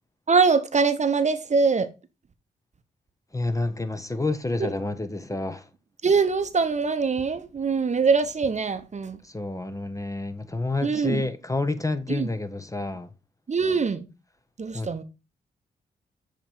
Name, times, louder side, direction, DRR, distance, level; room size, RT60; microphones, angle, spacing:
voice 1, 0.3-1.9 4.6-4.7 6.0-9.2 10.8-11.3 12.1-12.3 13.5-14.1 14.6-15.0, right 5 dB, 40° right, 0.8 m, -23 dB
voice 2, 3.3-5.7 9.2-13.1 14.7-15.0, left 2 dB, 15° left, 0.7 m, -29 dB
7.3 x 3.0 x 4.3 m
supercardioid pair, 45°, 19 cm